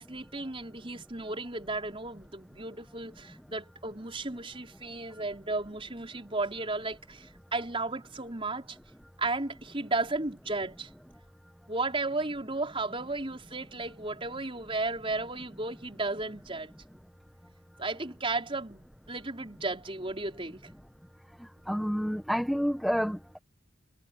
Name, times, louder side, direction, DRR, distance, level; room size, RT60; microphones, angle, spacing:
voice 1, 0.0-8.8 9.2-10.9 11.7-16.7 17.8-20.7, right 2 dB, 30° right, 5.1 m, -34 dB
voice 2, 21.7-23.4, equal, ahead, 1.3 m, -29 dB
head